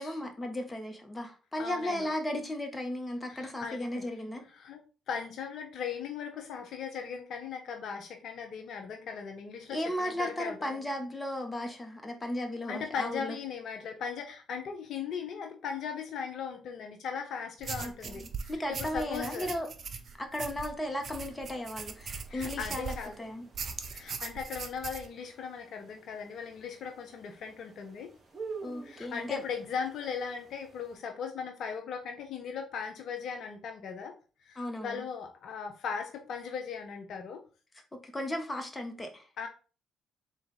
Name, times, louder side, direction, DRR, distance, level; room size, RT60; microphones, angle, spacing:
voice 1, 0.0-4.4 9.7-13.3 17.8-19.7 20.2-23.4 28.6-29.4 34.6-35.0 38.0-39.2, left 1 dB, 20° left, 4 dB, 1.0 m, -35 dB
voice 2, 1.6-2.1 3.3-4.1 4.5-10.8 12.7-19.5 22.3-23.2 23.9-28.1 28.8-34.1 34.4-37.4 39.4-39.5, left 6 dB, 60° left, 4 dB, 0.5 m, -38 dB
sound 1, 17.6-23.2 23.5-25.1, right 5 dB, 50° right, 0.5 m, -40 dB
sound 2, 21.1-31.0, right 4 dB, 35° right, 1.3 m, -50 dB
3.8 x 2.5 x 3.9 m, 0.36 s
hypercardioid pair, 50°, 0 cm